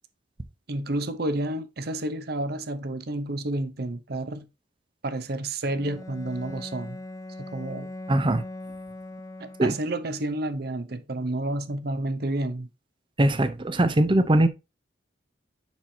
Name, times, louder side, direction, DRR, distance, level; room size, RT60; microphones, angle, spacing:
voice 1, 0.7-4.5 5.0-7.0 7.4-7.9 9.4-12.7, right 1 dB, 60° right, 0.8 m, -30 dB
Bowed string instrument, 5.6-10.1, left 1 dB, 20° left, 0.6 m, -40 dB
voice 2, 8.1-8.4 9.6-9.7 13.2-14.5, right 1 dB, 25° right, 0.7 m, -21 dB
7.3 x 5.8 x 2.8 m
head